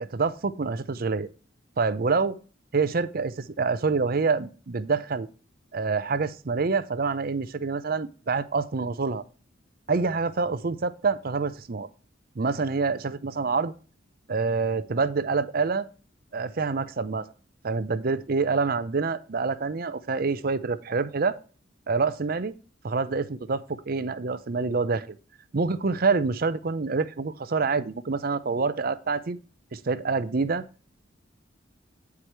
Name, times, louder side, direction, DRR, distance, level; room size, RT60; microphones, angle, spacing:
voice 1, 0.1-1.3 1.8-2.3 2.7-5.3 5.7-9.2 9.9-11.9 12.4-13.7 14.3-15.9 16.3-17.3 17.6-21.4 21.9-22.5 22.8-25.2 25.5-29.4 29.7-30.6, right 4 dB, 50° right, 14 dB, 0.6 m, -26 dB
9.7 x 4.8 x 4.4 m, 0.37 s
head